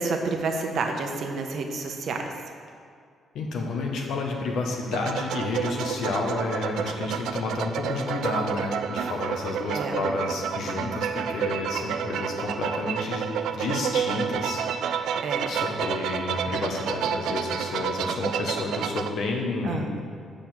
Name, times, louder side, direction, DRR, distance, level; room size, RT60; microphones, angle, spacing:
voice 1, 0.0-2.3 9.7-10.0 15.2-15.5 19.6-19.9, right 3 dB, 65° right, 4 dB, 0.9 m, -29 dB
voice 2, 3.3-15.0 15.5-20.0, left 3 dB, 75° left, 1 dB, 1.1 m, -30 dB
sound 1, 4.9-19.1, right 8 dB, 80° right, 0.3 m, -30 dB
6.9 x 5.1 x 6.1 m, 2.1 s
cardioid pair, 90°, 0 cm